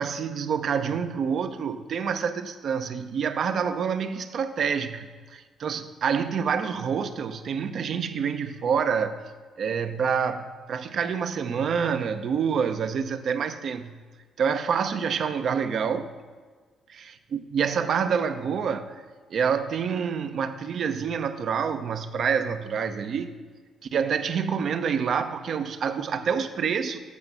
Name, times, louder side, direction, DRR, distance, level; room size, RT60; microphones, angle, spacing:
voice 1, 0.0-9.2 9.6-13.9 14.4-16.1 17.3-19.0 19.3-23.3 23.8-27.0, right 6 dB, 60° right, 9 dB, 0.7 m, -27 dB
8.3 x 6.5 x 7.0 m, 1.5 s
cardioid pair, 90°, 0 cm